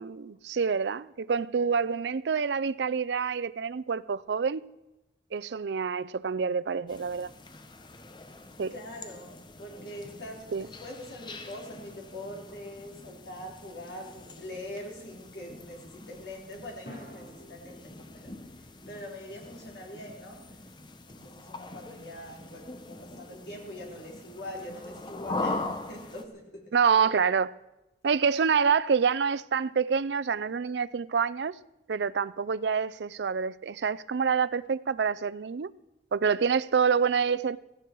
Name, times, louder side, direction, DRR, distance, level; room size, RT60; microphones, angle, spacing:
voice 1, 0.0-4.6 5.3-7.3 8.6-8.7 10.5-10.7 26.7-27.5 28.0-31.6 31.9-35.7 36.1-37.6, right 6 dB, 80° right, 0.5 m, -27 dB
sound 1, 6.9-26.3, left 2 dB, 25° left, 0.9 m, -42 dB
voice 2, 8.7-20.5 21.1-26.8, left 1 dB, 75° left, 4.1 m, -43 dB
sound 2, 16.9-21.2, equal, 60° left, 4.2 m, -52 dB
16.5 x 15.5 x 4.7 m
head